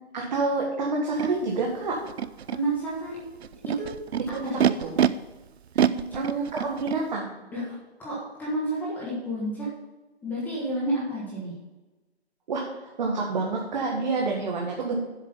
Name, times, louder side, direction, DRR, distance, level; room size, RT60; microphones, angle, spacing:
voice 1, 0.1-2.0 4.3-4.5 4.8-4.9 6.1-7.4 12.5-14.9, right 3 dB, 40° right, -1 dB, 1.7 m, -28 dB
Animal, 1.2-1.3 2.1-2.6 3.4-5.1 5.7-7.0, right 9 dB, 70° right, 0.6 m, -25 dB
voice 2, 2.5-3.3 3.6-3.9 4.3-4.7 5.8-6.2 6.6-6.7 7.5-9.7 10.2-11.5, right 1 dB, 5° left, -6 dB, 1.4 m, -31 dB
7.8 x 7.4 x 5.5 m, 1.2 s
hypercardioid pair, 160°, 33 cm